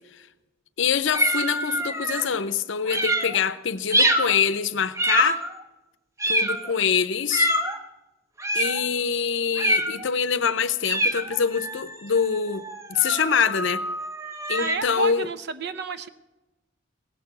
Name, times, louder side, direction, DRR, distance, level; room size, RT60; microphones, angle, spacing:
voice 1, 0.8-5.4 6.3-7.5 8.5-12.6 12.9-13.8 14.5-15.3, left 7 dB, 65° left, 0.7 m, -24 dB
sound 1, 1.1-2.3 2.9-3.4 3.9-4.4 5.0-5.6 6.2-6.7 7.3-7.8 8.4-8.8 9.6-10.1 10.8-14.8, right 1 dB, 15° right, 0.7 m, -25 dB
voice 2, 14.6-16.1, right 4 dB, 55° right, 0.6 m, -30 dB
17.5 x 6.8 x 8.2 m
head